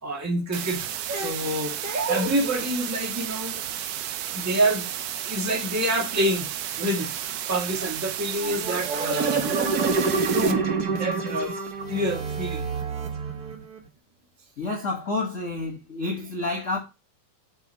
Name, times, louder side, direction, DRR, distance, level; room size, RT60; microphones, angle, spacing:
voice 1, 0.0-3.6 4.3-4.9 5.2-6.5 6.8-9.8 10.3-10.6 10.9-11.6 11.9-12.7, right 1 dB, 10° right, 0.9 m, -27 dB
sound 1, 0.5-10.5, right 11 dB, 75° right, 1.6 m, -33 dB
sound 2, 8.4-13.8, right 4 dB, 55° right, 1.1 m, -27 dB
voice 2, 14.6-16.8, left 2 dB, 85° left, 0.6 m, -29 dB
5.3 x 4.6 x 5.6 m
omnidirectional pair, 3.4 m